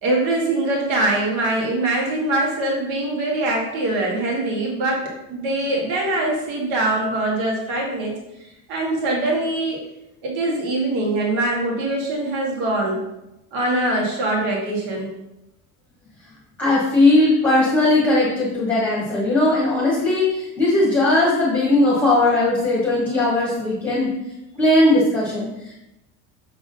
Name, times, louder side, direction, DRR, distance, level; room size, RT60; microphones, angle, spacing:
voice 1, 0.0-8.2 8.7-9.8 10.2-13.0 13.5-15.1, right 2 dB, 70° right, -2 dB, 1.8 m, -23 dB
voice 2, 16.6-24.1 24.6-25.8, left 2 dB, 5° left, -7 dB, 1.3 m, -18 dB
7.2 x 3.6 x 5.3 m, 0.91 s
cardioid pair, 170°, 36 cm